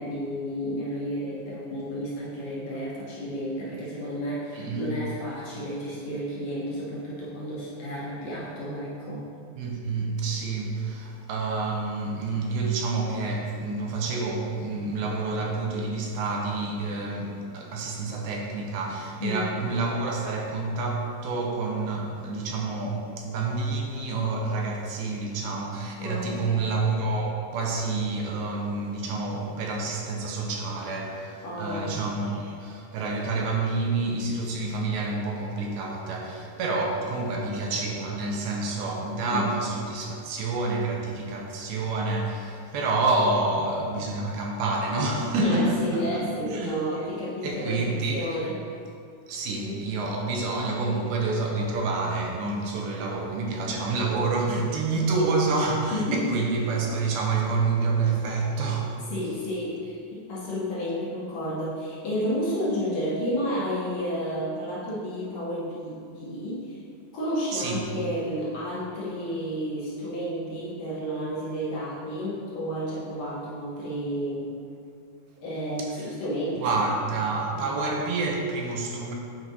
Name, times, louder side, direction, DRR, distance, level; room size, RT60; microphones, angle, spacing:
voice 1, 0.0-9.2 19.2-19.5 26.0-26.5 31.4-32.0 39.3-39.5 45.4-48.6 49.6-49.8 54.9-55.0 55.9-56.5 59.1-66.8 67.1-74.5 75.4-76.8 77.5-77.7, equal, 70° left, -7 dB, 1.6 m, -31 dB
voice 2, 4.5-4.9 9.6-47.0 47.4-48.4 48.7-48.8 49.3-59.0 67.5-67.8 75.8-76.1 76.6-79.1, right 3 dB, 80° right, 0 dB, 2.5 m, -28 dB
9.5 x 4.7 x 2.8 m, 2.4 s
omnidirectional pair, 4.4 m